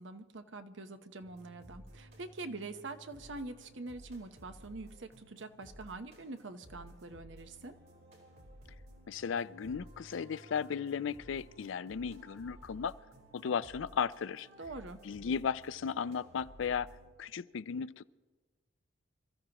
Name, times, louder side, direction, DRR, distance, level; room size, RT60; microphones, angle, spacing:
voice 1, 0.0-7.8 14.6-15.0, right 3 dB, 70° right, 9 dB, 0.9 m, -45 dB
sound 1, 1.2-17.1, equal, 90° right, 4.6 m, -56 dB
voice 2, 9.1-12.9 13.3-14.5 15.0-18.1, left 6 dB, 75° left, 16 dB, 0.4 m, -35 dB
27.0 x 14.0 x 2.9 m, 1.4 s
head